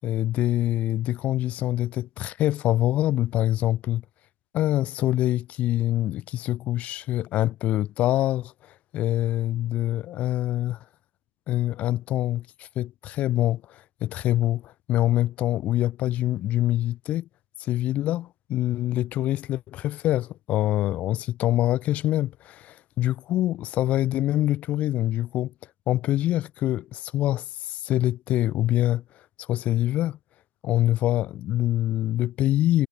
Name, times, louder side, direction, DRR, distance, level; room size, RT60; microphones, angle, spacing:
voice 1, 0.0-4.0 4.5-8.5 8.9-10.8 11.5-17.3 17.6-25.5 25.9-29.0 29.5-30.2 30.6-32.9, left 14 dB, 10° left, 2.6 m, -25 dB
figure-of-eight pair, 155°, 14 cm